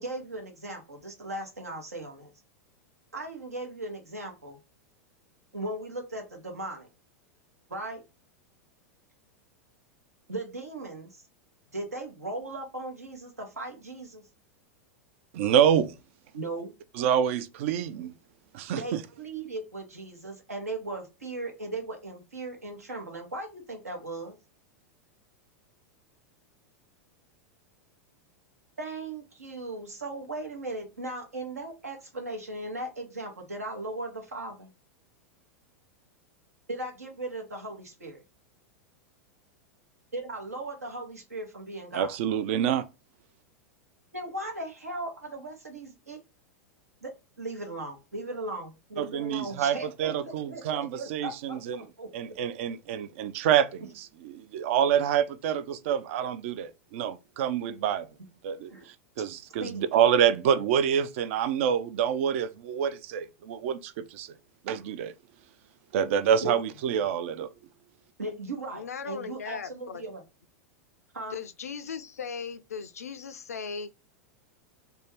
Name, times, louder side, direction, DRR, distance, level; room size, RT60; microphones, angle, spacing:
voice 1, 0.0-2.3 3.1-4.6 5.5-6.9 7.7-8.0 10.3-11.2 11.7-14.2 16.3-16.7 18.7-24.3 28.8-34.7 36.7-38.2 40.1-42.2 44.1-46.2 47.0-52.1 53.8-53.9 58.7-58.9 59.6-59.8 66.4-66.6 68.2-70.2 71.1-71.4, right 2 dB, 90° right, 0.9 m, -37 dB
voice 2, 15.3-15.9 17.0-18.1 18.5-19.0 41.9-42.8 49.0-51.8 52.1-58.1 58.4-58.7 59.2-64.3 64.7-65.1 65.9-67.5, right 9 dB, 60° right, 0.4 m, -27 dB
voice 3, 68.7-70.0 71.3-73.9, left 6 dB, 80° left, 0.4 m, -38 dB
2.6 x 2.2 x 3.3 m
hypercardioid pair, 95°, 8 cm